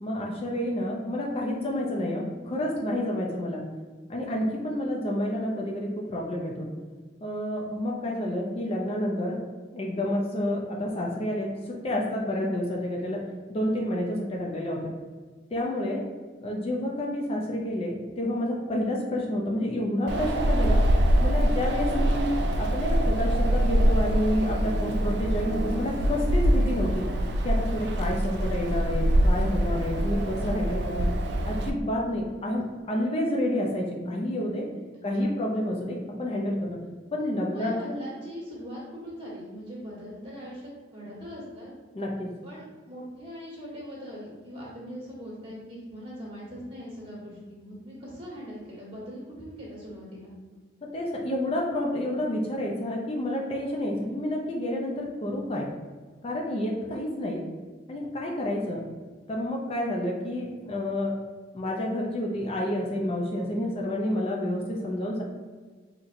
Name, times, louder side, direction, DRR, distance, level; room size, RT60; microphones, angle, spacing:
voice 1, 0.0-3.6 4.1-6.7 7.2-9.4 9.7-13.2 13.5-14.9 15.5-16.0 16.4-20.8 21.2-22.3 22.6-27.0 27.4-31.1 31.5-34.7 35.0-36.8 37.1-38.0 41.9-42.3 50.8-55.7 56.2-57.4 57.9-58.8 59.3-61.1 61.5-65.2, left 1 dB, 30° left, -1 dB, 0.4 m, -29 dB
Wind, 20.1-31.7, right 1 dB, 60° right, 0.4 m, -24 dB
voice 2, 37.5-41.7 42.4-50.3, equal, 30° right, -6 dB, 1.3 m, -41 dB
4.1 x 2.9 x 2.5 m, 1.4 s
head